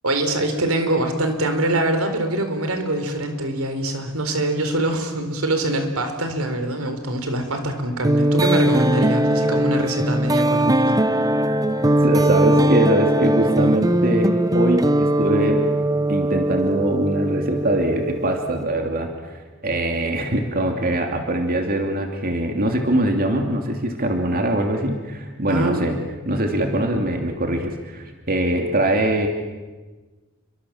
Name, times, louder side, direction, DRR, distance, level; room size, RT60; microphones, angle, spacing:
voice 1, 0.0-11.0 25.5-25.9, right 1 dB, 90° right, 6 dB, 4.1 m, -24 dB
sound 1, 8.0-18.6, right 1 dB, 15° right, 0.8 m, -20 dB
voice 2, 12.0-15.7 16.1-26.0 26.2-29.3, right 1 dB, 45° right, 3 dB, 2.8 m, -22 dB
30.0 x 24.0 x 7.4 m, 1.3 s
head